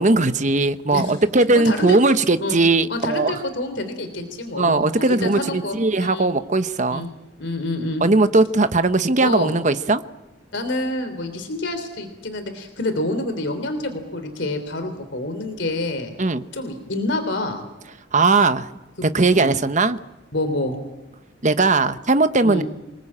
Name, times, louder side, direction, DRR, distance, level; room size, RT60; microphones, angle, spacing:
voice 1, 0.0-3.4 4.5-7.1 8.0-10.0 16.2-16.4 18.1-18.7 19.0-20.0 21.4-22.6, right 3 dB, 40° right, 11 dB, 1.0 m, -19 dB
voice 2, 0.9-1.2 1.5-2.0 2.4-2.6 2.9-6.3 6.9-7.1 7.4-8.0 9.2-9.5 10.5-16.1 16.5-17.6 19.3-19.6 20.3-20.7 22.4-22.6, left 2 dB, 65° left, 7 dB, 3.3 m, -27 dB
27.5 x 20.0 x 8.7 m, 1.0 s
head